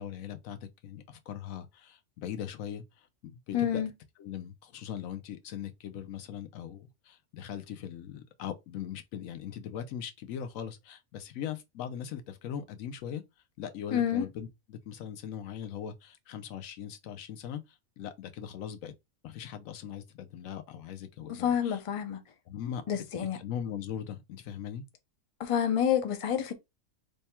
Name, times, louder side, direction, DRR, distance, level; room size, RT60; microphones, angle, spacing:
voice 1, 0.0-3.8 4.2-13.2 13.6-18.9 19.2-21.8 22.5-24.8, left 9 dB, 80° left, 1.0 m, -40 dB
voice 2, 3.5-3.9 13.9-14.3 21.3-22.2 22.9-23.4 25.4-26.5, left 9 dB, 55° left, 0.3 m, -28 dB
3.4 x 2.2 x 4.2 m
omnidirectional pair, 1.4 m